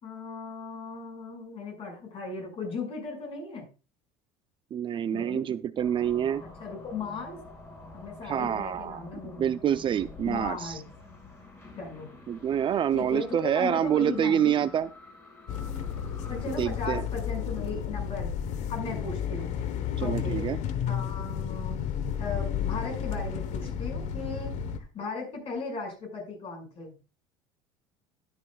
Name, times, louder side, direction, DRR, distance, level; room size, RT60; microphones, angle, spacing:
voice 1, 0.0-3.7 5.1-5.5 6.4-7.4 7.9-9.6 10.3-10.8 11.8-12.1 12.9-14.7 16.3-18.3 18.7-19.5 20.0-20.5 20.9-21.8 22.2-24.5 24.9-27.0, left 4 dB, 45° left, 2 dB, 5.9 m, -37 dB
voice 2, 4.7-6.4 8.2-9.0 9.4-10.8 12.3-14.9 16.6-17.1 20.0-20.6, right 9 dB, 40° right, 13 dB, 0.5 m, -27 dB
sound 1, 5.8-17.8, left 2 dB, 20° left, 5.0 m, -48 dB
sound 2, 15.5-24.8, left 8 dB, 60° left, 1.2 m, -32 dB
12.0 x 10.5 x 2.4 m, 0.33 s
supercardioid pair, 105°, 14 cm